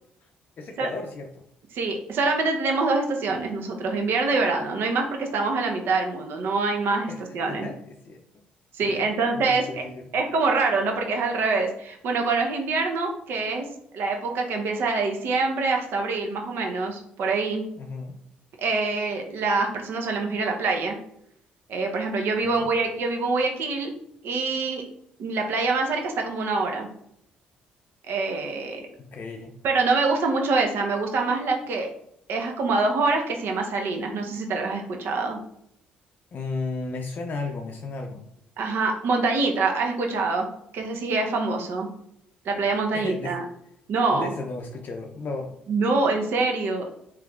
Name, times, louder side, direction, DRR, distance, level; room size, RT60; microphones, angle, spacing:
voice 1, 0.6-1.4 7.1-8.2 8.8-9.1 9.3-10.1 17.8-18.2 22.6-22.7 29.1-29.5 36.3-38.2 42.9-43.3 44.1-45.6, left 3 dB, 50° left, 3 dB, 0.4 m, -34 dB
voice 2, 1.7-7.1 7.3-7.7 8.7-9.8 10.1-13.7 13.9-17.6 18.6-21.0 21.7-23.9 24.2-24.8 25.2-26.9 28.1-28.9 29.6-31.9 32.3-35.4 38.6-41.9 42.4-43.4 43.9-44.3 45.7-46.9, right 3 dB, 65° right, 2 dB, 0.7 m, -25 dB
3.3 x 3.0 x 2.4 m, 0.73 s
supercardioid pair, 60°, 4 cm